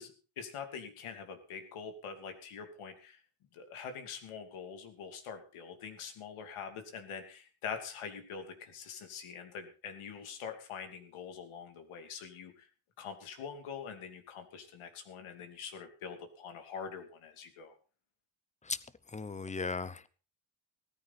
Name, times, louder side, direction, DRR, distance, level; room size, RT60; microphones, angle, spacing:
voice 1, 0.0-3.2 3.5-12.7 13.0-17.7, left 6 dB, 85° left, 2.8 m, -44 dB
voice 2, 19.1-20.1, left 4 dB, 15° left, 0.8 m, -37 dB
17.0 x 14.0 x 4.1 m
cardioid pair, 130°, 49 cm